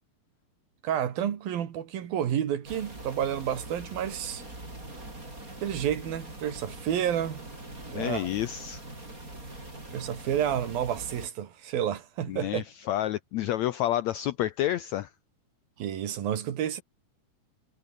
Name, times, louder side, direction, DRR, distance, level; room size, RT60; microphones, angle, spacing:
voice 1, 0.8-4.4 5.6-7.5 7.9-8.3 9.9-12.6 15.8-16.8, right 10 dB, 85° right, 4.0 m, -30 dB
sound 1, 2.6-11.3, right 2 dB, 20° right, 8.2 m, -43 dB
voice 2, 7.9-8.9 12.3-15.1, left 13 dB, 80° left, 1.6 m, -29 dB
omnidirectional pair, 4.0 m